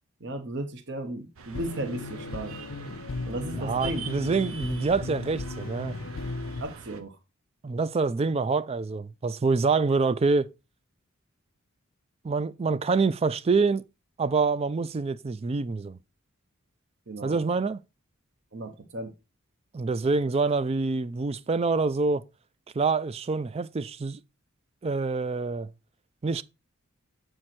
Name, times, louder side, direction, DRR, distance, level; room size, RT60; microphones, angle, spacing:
voice 1, 0.2-2.5 3.3-4.0 6.6-7.1 17.1-17.4 18.5-19.1, right 1 dB, 55° right, 1.0 m, -35 dB
sound 1, 1.4-7.0, right 5 dB, 85° right, 0.9 m, -43 dB
sound 2, 1.5-6.6, left 3 dB, 65° left, 0.6 m, -36 dB
voice 2, 3.6-5.9 7.6-10.5 12.2-13.8 14.2-16.0 17.2-17.8 19.7-22.2 22.8-24.2 24.8-25.7 26.2-26.4, right 4 dB, 30° right, 0.3 m, -26 dB
7.6 x 4.7 x 4.3 m
head